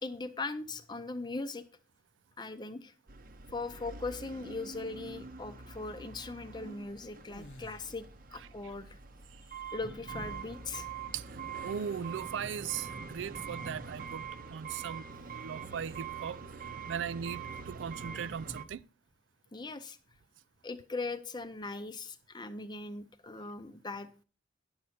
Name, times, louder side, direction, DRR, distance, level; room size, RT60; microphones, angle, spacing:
voice 1, 0.0-1.7 2.4-2.9 3.5-8.0 8.3-9.0 9.5-10.9 19.5-20.0 20.6-24.1, left 3 dB, 25° left, 0.6 m, -39 dB
sound 1, 3.1-18.6, right 5 dB, 50° right, 0.7 m, -44 dB
sound 2, 3.6-4.2 7.2-8.3 11.5-13.0 13.4-13.6 15.7-16.2, left 2 dB, 70° left, 0.8 m, -56 dB
voice 2, 11.1-16.4 16.9-18.8, right 8 dB, 90° right, 0.4 m, -39 dB
10.5 x 6.4 x 4.3 m
head